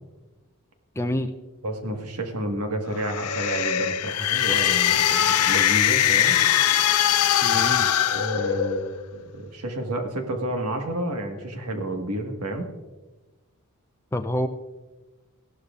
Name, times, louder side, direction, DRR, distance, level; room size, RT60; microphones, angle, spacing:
voice 1, 1.0-1.3 7.4-7.9 14.1-14.5, left 1 dB, 10° left, 6 dB, 0.4 m, -26 dB
voice 2, 1.6-6.4 8.1-12.7, right 1 dB, 80° right, 4 dB, 1.6 m, -30 dB
sound 1, 2.9-9.0, left 10 dB, 80° left, 0.5 m, -21 dB
16.0 x 12.0 x 2.5 m, 1.2 s
head